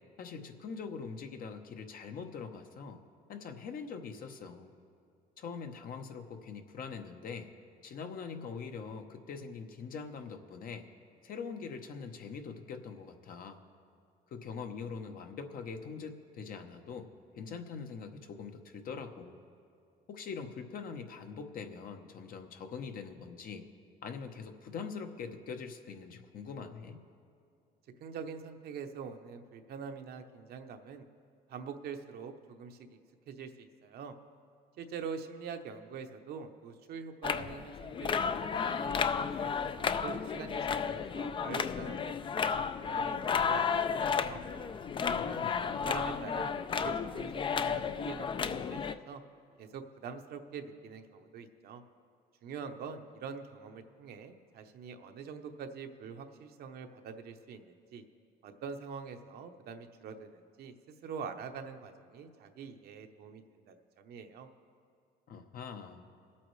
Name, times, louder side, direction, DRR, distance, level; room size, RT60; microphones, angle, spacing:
voice 1, 0.2-3.0 3.3-4.7 5.4-7.5 7.8-10.9 11.2-13.6 14.3-17.1 17.4-19.4 20.1-23.6 24.0-27.0 45.1-45.9 65.3-66.0, left 5 dB, 55° left, 5 dB, 1.0 m, -43 dB
voice 2, 28.0-31.1 31.5-33.0 33.3-34.1 34.8-44.4 45.0-45.5 45.8-46.5 46.8-49.2 49.6-51.8 52.4-58.0 58.4-64.5, right 6 dB, 65° right, 6 dB, 0.9 m, -45 dB
sound 1, 37.2-48.9, left 6 dB, 30° left, 0.4 m, -33 dB
23.0 x 8.6 x 3.2 m, 2.5 s
cardioid pair, 110°, 17 cm